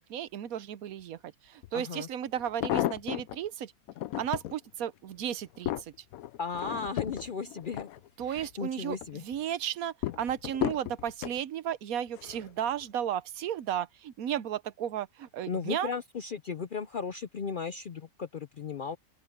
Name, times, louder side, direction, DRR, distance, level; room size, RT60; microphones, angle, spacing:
voice 1, 0.0-3.7 4.2-5.9 8.2-9.0 9.2-15.9, right 10 dB, 75° right, 1.2 m, -34 dB
sound 1, 1.6-1.7 2.4-3.4 3.9-4.5 5.1-8.5 8.9-9.4 10.0-11.4 12.1-12.5 12.8-12.9, left 14 dB, 80° left, 1.0 m, -34 dB
voice 2, 1.7-2.1 6.4-7.9 8.2-9.2 15.5-19.0, left 5 dB, 55° left, 0.6 m, -36 dB
open air
omnidirectional pair, 1.5 m